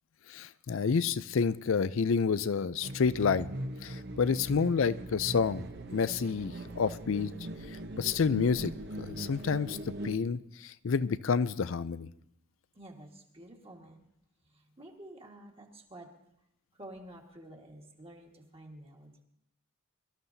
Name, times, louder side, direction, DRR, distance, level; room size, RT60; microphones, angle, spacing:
voice 1, 0.3-3.5 3.8-5.6 5.9-7.3 8.0-8.7 9.0-9.8 10.0-12.1, left 5 dB, 60° left, 16 dB, 0.4 m, -29 dB
sound 1, 2.8-10.2, right 1 dB, 50° right, 0.8 m, -40 dB
voice 2, 12.7-14.0 14.4-16.1 16.7-19.2, right 1 dB, 25° right, 0 dB, 1.6 m, -50 dB
24.0 x 13.5 x 2.7 m, 0.77 s
head